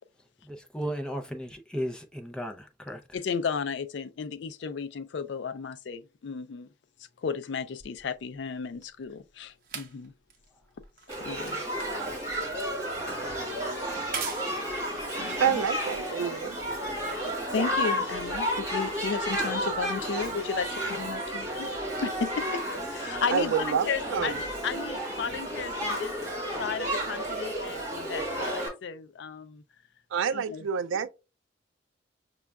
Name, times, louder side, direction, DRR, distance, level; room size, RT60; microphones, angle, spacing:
voice 1, 0.4-3.0 11.8-11.9, equal, 5° left, 0.5 m, -35 dB
voice 2, 3.1-6.7 7.2-10.1 11.2-11.6 15.2-15.6 17.2-21.7 22.0-26.1 26.6-29.6 30.3-30.7, left 6 dB, 65° left, 0.4 m, -34 dB
sound 1, 7.8-16.4 17.2-17.3, right 7 dB, 45° right, 0.7 m, -44 dB
Shout / Human group actions, 11.1-28.7, equal, 15° right, 1.4 m, -32 dB
voice 3, 15.4-16.6 23.3-24.3 30.1-31.1, right 7 dB, 85° right, 0.3 m, -28 dB
6.1 x 2.3 x 2.2 m
head